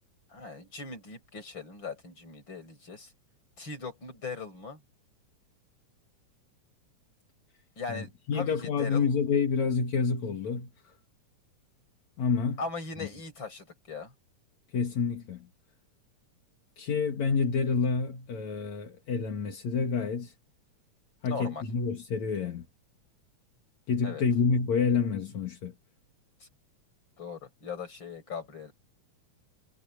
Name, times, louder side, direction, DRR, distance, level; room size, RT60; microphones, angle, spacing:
voice 1, 0.3-3.1 3.6-4.8 7.8-9.1 12.6-14.1 21.3-21.6 24.0-24.2 26.4-26.5 27.2-28.7, left 4 dB, 35° left, 7.2 m, -39 dB
voice 2, 7.9-10.7 12.2-12.6 14.7-15.5 16.8-20.3 21.2-22.7 23.9-25.7, left 5 dB, 65° left, 3.6 m, -28 dB
omnidirectional pair, 3.5 m